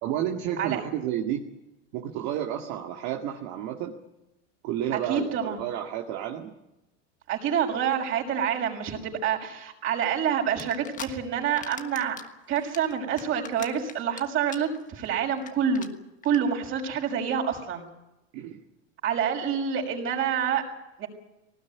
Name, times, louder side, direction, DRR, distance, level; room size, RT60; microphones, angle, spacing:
voice 1, 0.0-1.4 1.9-4.0 4.6-6.5 18.3-18.6, right 10 dB, 50° right, 2 dB, 2.2 m, -31 dB
voice 2, 4.9-5.6 7.3-12.2 12.5-15.9 16.2-17.8 19.0-20.6 21.0-21.1, right 8 dB, 35° right, 0 dB, 6.3 m, -27 dB
sound 1, 10.6-11.1 11.4-12.3 12.6-14.2 14.5-14.8 15.0-15.1 15.4-15.5 15.7-15.9 16.2-16.4, left 7 dB, 20° left, 1.4 m, -39 dB
20.0 x 19.0 x 9.6 m, 0.95 s
supercardioid pair, 140°, 35 cm